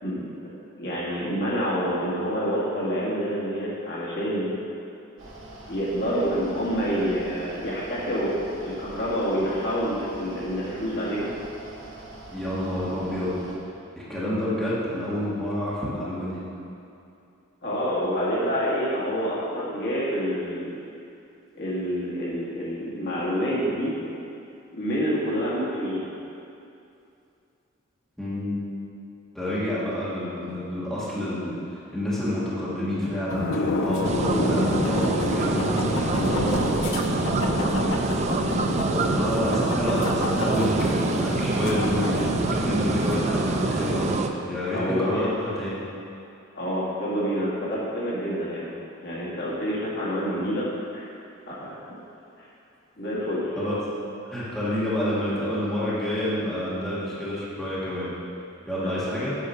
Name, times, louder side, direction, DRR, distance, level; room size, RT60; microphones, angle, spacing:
voice 1, 0.0-0.5 0.8-4.5 5.7-8.3 8.6-11.3 17.6-20.8 21.6-23.9 24.7-26.1 36.2-37.1 44.7-45.3 46.6-48.7 49.0-51.1 51.5-51.8 52.4-52.5 53.0-53.6 58.8-58.9, equal, 55° left, -7 dB, 1.9 m, -27 dB
Mechanical fan, 5.2-13.6, right 2 dB, 70° right, 1.5 m, -43 dB
voice 2, 12.3-13.4 14.0-16.4 28.2-28.6 29.4-31.6 31.9-35.6 38.8-45.8 53.6-53.7 54.3-58.1 58.7-59.4, left 1 dB, ahead, -10 dB, 1.6 m, -28 dB
sound 1, 33.3-44.2, left 2 dB, 80° left, 0.6 m, -29 dB
sound 2, 34.0-44.3, right 3 dB, 35° right, 0.4 m, -26 dB
8.1 x 4.8 x 5.6 m, 2.6 s
head